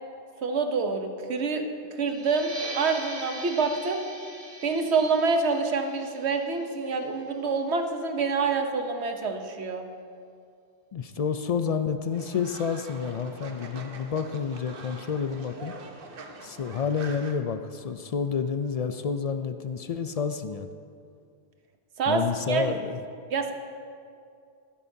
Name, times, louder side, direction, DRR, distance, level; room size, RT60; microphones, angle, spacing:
voice 1, 0.4-1.6 1.9-4.0 4.6-9.8 22.0-22.2 22.5-22.7 23.3-23.5, right 4 dB, 80° right, 5 dB, 1.2 m, -27 dB
sound 1, 2.1-7.3, right 2 dB, 30° right, 1.5 m, -41 dB
voice 2, 10.9-15.7 16.4-20.7 22.1-23.0, left 6 dB, 60° left, 9 dB, 0.4 m, -29 dB
Fowl, 12.1-17.3, right 3 dB, 60° right, 1.0 m, -44 dB
14.5 x 12.5 x 2.7 m, 2.3 s
omnidirectional pair, 1.1 m